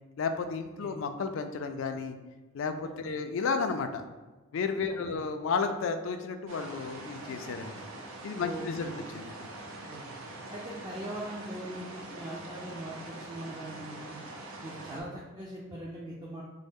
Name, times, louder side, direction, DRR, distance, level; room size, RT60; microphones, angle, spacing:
voice 1, 0.2-2.2 2.5-4.0 4.5-7.7 8.2-8.9 9.1-9.3, left 5 dB, 65° left, 8 dB, 0.3 m, -32 dB
voice 2, 4.9-5.2 8.4-9.0 9.8-10.0 10.5-14.2 14.6-16.4, right 1 dB, 20° right, -6 dB, 0.4 m, -41 dB
sound 1, 6.5-15.0, right 2 dB, 80° right, 0.5 m, -44 dB
4.0 x 2.0 x 3.4 m, 1.2 s
head